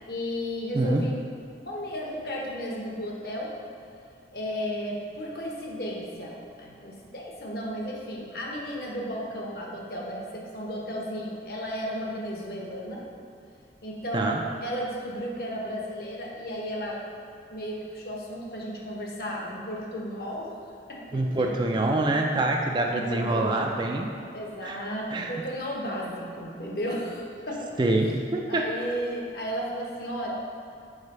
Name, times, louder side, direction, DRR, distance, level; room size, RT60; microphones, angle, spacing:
voice 1, 0.1-1.1 1.7-3.5 4.3-13.0 13.8-14.3 14.6-17.0 17.5-20.5 20.9-21.8 22.8-23.7 24.3-27.8 28.5-30.3, equal, 55° left, -2 dB, 1.0 m, -34 dB
voice 2, 21.1-24.1 24.6-24.8 25.1-25.3 27.8-28.7, right 2 dB, 25° right, 2 dB, 0.3 m, -25 dB
4.9 x 4.5 x 5.4 m, 2.4 s
head